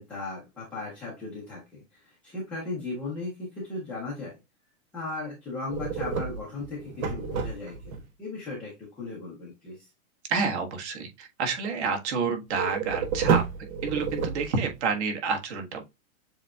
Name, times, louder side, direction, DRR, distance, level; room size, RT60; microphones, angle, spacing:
voice 1, 0.0-4.4 4.9-7.9 8.2-9.9, left 3 dB, 5° left, -9 dB, 0.4 m, -37 dB
sound 1, 5.7-8.0 12.5-14.8, right 6 dB, 80° right, 1.1 m, -29 dB
voice 2, 10.3-13.4 13.8-15.8, right 5 dB, 55° right, 3 dB, 1.4 m, -29 dB
7.1 x 2.8 x 2.3 m, 0.23 s
supercardioid pair, 160°, 41 cm